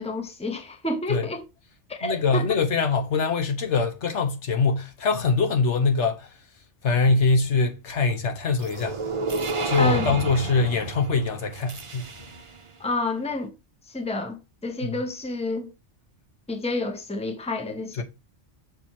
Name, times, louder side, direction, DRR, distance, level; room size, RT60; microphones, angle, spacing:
voice 1, 0.0-1.4 1.9-2.6 9.8-10.2 12.8-13.5 13.9-15.7 16.5-18.0, left 2 dB, 5° left, 0.9 m, -29 dB
voice 2, 2.0-6.3 6.8-9.0 9.6-12.0 14.8-14.9 18.0-18.1, left 4 dB, 70° left, 1.3 m, -23 dB
sound 1, 8.6-12.6, right 3 dB, 35° right, 0.6 m, -31 dB
6.3 x 4.3 x 4.5 m
omnidirectional pair, 1.2 m